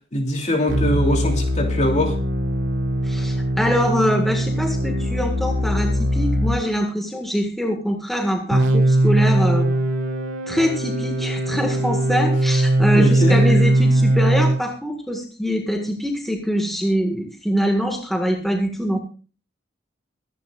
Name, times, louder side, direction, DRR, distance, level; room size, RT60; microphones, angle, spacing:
voice 1, 0.1-2.2 12.9-13.4, left 1 dB, 35° left, 2 dB, 2.9 m, -22 dB
sound 1, 0.7-6.6 8.5-14.6, right 1 dB, 80° right, 2.8 m, -20 dB
voice 2, 3.0-9.7 10.5-19.0, equal, ahead, 2 dB, 1.7 m, -23 dB
24.0 x 10.5 x 2.5 m, 0.37 s
head